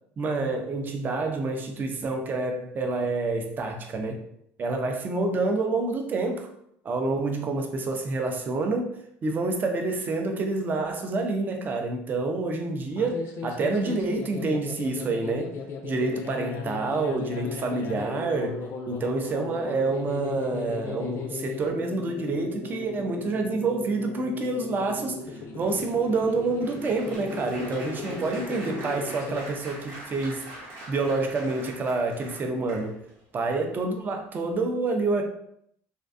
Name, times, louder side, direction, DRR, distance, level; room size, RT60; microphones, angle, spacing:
voice 1, 0.2-4.2 4.6-6.5 6.8-15.5 15.8-30.4 30.9-33.0 33.3-35.2, right 3 dB, 35° right, 3 dB, 0.4 m, -28 dB
sound 1, 12.9-29.4, left 4 dB, 50° left, 0.4 m, -37 dB
Applause, 24.9-33.2 33.8-34.1 34.3-34.5, right 1 dB, 65° right, 0.8 m, -44 dB
2.5 x 2.2 x 2.5 m, 0.71 s
supercardioid pair, 105°, 6 cm